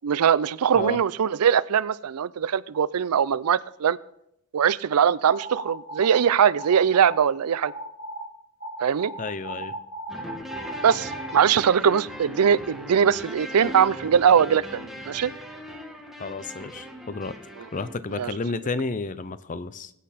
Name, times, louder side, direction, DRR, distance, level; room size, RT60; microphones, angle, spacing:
voice 1, 0.0-4.0 4.5-7.7 8.8-9.1 10.8-14.8 15.1-15.3 18.2-18.3, right 7 dB, 90° right, 19 dB, 0.4 m, -21 dB
sound 1, 5.3-6.2 6.6-7.3 7.6-8.2 8.6-11.3, right 1 dB, 40° right, 1.7 m, -36 dB
voice 2, 9.2-9.7 16.2-17.4 17.7-19.9, left 3 dB, 35° left, 15 dB, 0.5 m, -31 dB
sound 2, 10.1-17.9, equal, ahead, 1.2 m, -39 dB
20.5 x 8.5 x 4.2 m, 0.78 s
head